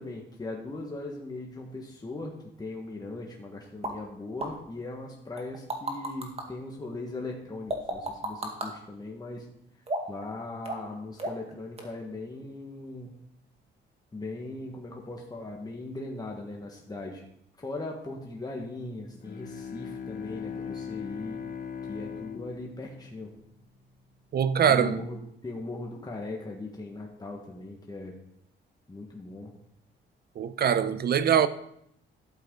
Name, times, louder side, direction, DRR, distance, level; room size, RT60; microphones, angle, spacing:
voice 1, 0.0-9.5 10.1-13.2 14.1-17.2 17.6-21.4 21.9-23.3 24.7-28.1 28.9-29.5, left 2 dB, 20° left, 1.6 m, -39 dB
sound 1, 3.8-3.9 4.4-4.5 5.4-6.4 7.7-8.7 9.9-10.2 10.6-10.9 11.2-11.5 11.8-11.9, right 1 dB, 30° right, 2.1 m, -32 dB
Bowed string instrument, 19.1-23.9, left 6 dB, 45° left, 1.2 m, -39 dB
voice 2, 24.3-25.0 30.4-31.5, right 8 dB, 55° right, 0.7 m, -23 dB
12.0 x 7.9 x 3.9 m
cardioid pair, 90°, 20 cm